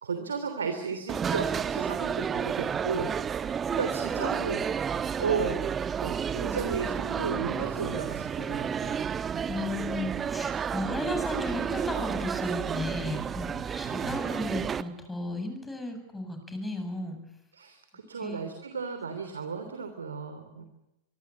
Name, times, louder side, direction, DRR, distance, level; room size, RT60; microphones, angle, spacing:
voice 1, 0.0-5.6 6.0-9.0 13.9-14.2 17.5-20.7, right 5 dB, 70° right, 7 dB, 3.2 m, -34 dB
sound 1, 1.1-14.8, right 7 dB, 20° right, 1.2 m, -31 dB
voice 2, 9.4-17.2 18.2-18.5 20.6-20.7, left 2 dB, 10° left, 6 dB, 7.7 m, -35 dB
25.0 x 24.0 x 8.6 m, 0.91 s
figure-of-eight pair, 90°, 0 cm